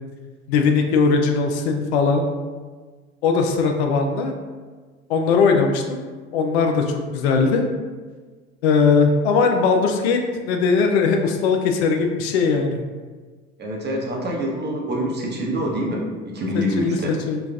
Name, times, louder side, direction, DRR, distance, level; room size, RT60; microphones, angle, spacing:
voice 1, 0.5-2.3 3.2-4.3 5.1-7.7 8.6-12.8 16.8-17.4, left 5 dB, 80° left, 4 dB, 0.5 m, -19 dB
voice 2, 13.6-17.1, equal, 35° right, -1 dB, 0.8 m, -26 dB
3.9 x 2.3 x 2.3 m, 1.4 s
hypercardioid pair, 70°, 32 cm